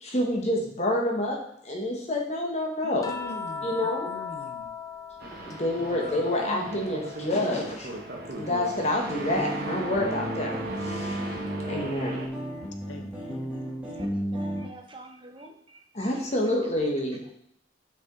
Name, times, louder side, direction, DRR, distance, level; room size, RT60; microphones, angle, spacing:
voice 1, 0.0-3.1 3.6-4.1 5.4-7.9 8.3-11.2 11.7-12.2 15.9-17.2, left 1 dB, 35° left, 0 dB, 1.1 m, -28 dB
voice 2, 2.8-4.7 5.8-6.0 12.8-13.9, left 2 dB, 80° left, 5 dB, 0.7 m, -44 dB
sound 1, 3.0-7.5 7.9-9.5 11.0-11.2, left 6 dB, 20° left, 0.4 m, -39 dB
sound 2, 5.2-12.3, right 2 dB, 50° right, 0.9 m, -36 dB
sound 3, 9.3-14.7, equal, 5° right, 1.2 m, -33 dB
voice 3, 14.0-15.8, right 2 dB, 25° right, 3 dB, 0.7 m, -47 dB
5.9 x 4.7 x 3.9 m, 0.67 s
head